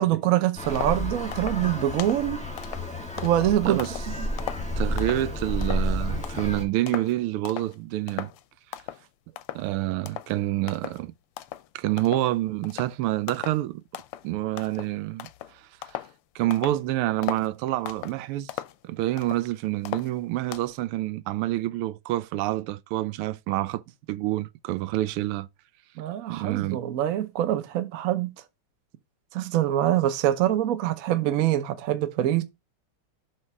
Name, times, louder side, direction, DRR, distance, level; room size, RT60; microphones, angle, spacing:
voice 1, 0.0-2.4 3.2-3.8 4.1-4.3 26.0-28.3 29.3-32.4, right 12 dB, 65° right, 0.8 m, -24 dB
Traffic noise roadway noise, 0.6-6.6, left 1 dB, 5° left, 1.1 m, -31 dB
sound 1, 0.7-1.0 1.3-1.6 2.0-2.3 2.6-4.1 4.4-5.3 5.6-5.9 6.2-6.6 6.9-7.2 7.5-7.8 8.1-8.4 8.7-9.1 9.4-9.7 10.1-10.3 10.7-11.0 11.4-11.7 12.0-12.4 12.6-13.0 13.3-13.6 13.9-14.3 14.6-16.2 16.5-16.8 17.2-17.5 17.9-18.2 18.5-19.5 19.9-20.7, left 13 dB, 90° left, 1.5 m, -37 dB
voice 2, 3.6-3.9 4.8-8.3 9.5-11.1 11.7-13.8 14.2-15.6 15.9-16.0 16.3-18.5 18.8-23.8 24.1-25.5 26.3-26.8, right 16 dB, 90° right, 1.5 m, -27 dB
7.5 x 3.2 x 5.9 m
omnidirectional pair, 2.4 m